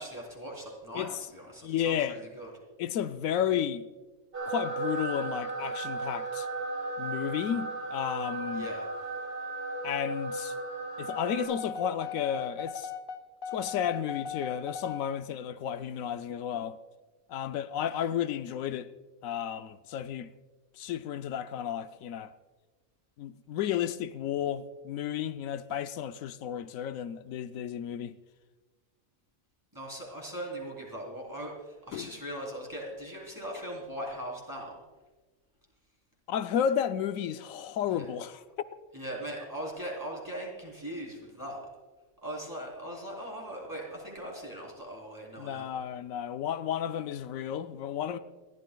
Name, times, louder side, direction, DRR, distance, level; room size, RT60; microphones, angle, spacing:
voice 1, 0.0-2.5 8.5-8.9 29.7-34.8 37.9-38.1 38.9-41.7 42.2-45.8, right 1 dB, 15° right, 3.5 m, -40 dB
voice 2, 1.6-2.2 2.8-3.9 4.5-6.5 7.0-8.7 9.8-10.5 11.0-12.9 13.5-16.8 17.3-18.9 19.2-20.3 20.8-22.3 23.2-28.1 31.9-32.1 36.3-38.4 45.4-48.2, left 9 dB, 85° left, 1.0 m, -32 dB
sound 1, 4.3-11.4, right 2 dB, 55° right, 5.4 m, -35 dB
sound 2, 11.1-15.1, left 6 dB, 45° left, 0.9 m, -38 dB
28.0 x 12.5 x 2.3 m
omnidirectional pair, 1.4 m